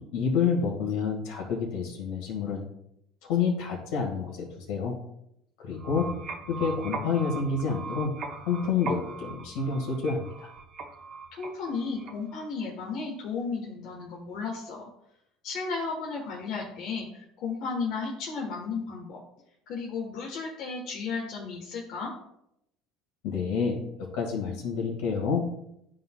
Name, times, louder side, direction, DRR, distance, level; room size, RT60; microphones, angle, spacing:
voice 1, 0.0-2.6 3.3-5.0 5.6-6.1 6.5-8.1 8.5-10.5 23.2-23.8 24.1-25.4, left 5 dB, 80° left, 0 dB, 1.8 m, -28 dB
sound 1, 5.7-12.5, right 4 dB, 50° right, 1.0 m, -39 dB
voice 2, 11.3-14.9 15.4-19.2 19.7-22.1, left 4 dB, 60° left, -3 dB, 1.3 m, -34 dB
11.5 x 3.9 x 2.3 m, 0.79 s
supercardioid pair, 105°, 0 cm